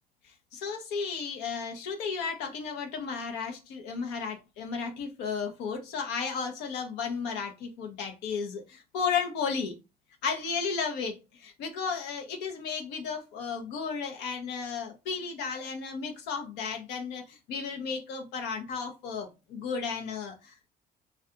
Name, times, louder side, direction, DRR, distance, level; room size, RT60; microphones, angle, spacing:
voice 1, 0.2-9.7 10.2-20.6, left 5 dB, 90° left, 3 dB, 0.7 m, -34 dB
2.3 x 2.3 x 2.7 m, 0.26 s
cardioid pair, 110°, 17 cm